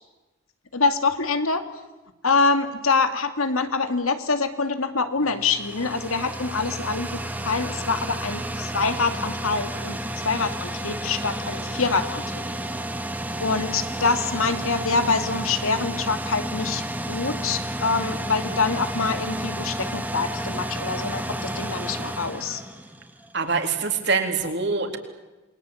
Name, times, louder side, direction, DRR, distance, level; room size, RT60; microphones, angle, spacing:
voice 1, 0.7-1.6 2.2-10.0 10.2-12.4 13.4-16.8 17.1-22.6, left 4 dB, 85° left, 9 dB, 2.5 m, -25 dB
sound 1, 5.2-23.3, right 1 dB, 10° right, 2.1 m, -31 dB
voice 2, 23.3-25.0, right 4 dB, 55° right, 5 dB, 3.8 m, -24 dB
28.5 x 22.0 x 8.7 m, 1.1 s
head